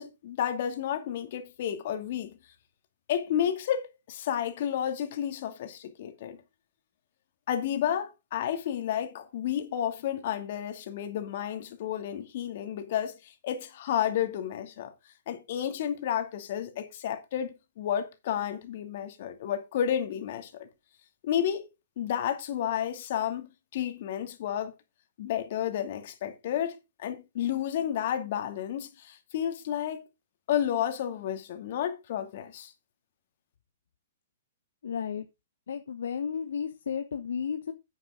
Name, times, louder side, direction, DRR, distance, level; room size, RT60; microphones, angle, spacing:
voice 1, 0.0-2.3 3.1-6.4 7.5-14.9 15.3-20.7 21.2-21.7 22.0-24.7 25.2-30.0 30.5-32.7, left 10 dB, 55° left, 2.5 m, -31 dB
voice 2, 34.8-35.2 35.7-37.7, left 7 dB, 75° left, 1.1 m, -33 dB
10.0 x 9.1 x 3.8 m
hypercardioid pair, 125°, 0 cm